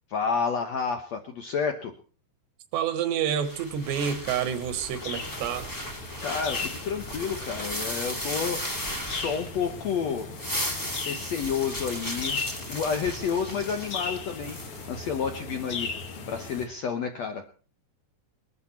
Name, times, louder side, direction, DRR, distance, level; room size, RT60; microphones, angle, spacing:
voice 1, 0.1-1.9 6.2-8.6 9.0-10.3 11.0-14.6 14.9-15.9 16.3-17.4, left 6 dB, 85° left, 1.5 m, -30 dB
voice 2, 2.7-5.7, right 8 dB, 85° right, 3.5 m, -28 dB
sound 1, 3.4-9.8 10.2-14.9, equal, 15° left, 0.7 m, -36 dB
sound 2, 3.7-16.7, left 4 dB, 60° left, 1.4 m, -38 dB
21.0 x 12.5 x 4.3 m
omnidirectional pair, 4.8 m